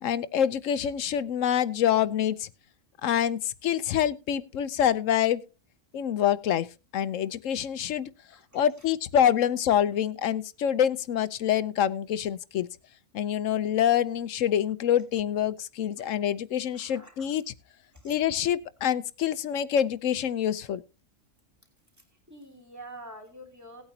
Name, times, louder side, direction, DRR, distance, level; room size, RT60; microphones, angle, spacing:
voice 1, 0.0-2.5 3.0-5.4 5.9-6.7 6.9-8.1 8.5-12.7 13.1-17.4 18.0-20.8, left 10 dB, 80° left, 15 dB, 1.1 m, -26 dB
voice 2, 8.3-8.8 16.0-16.1 16.7-17.3 17.9-18.1 22.0-23.8, right 1 dB, 15° right, 3 dB, 3.2 m, -47 dB
18.0 x 8.8 x 2.8 m, 0.29 s
omnidirectional pair, 1.3 m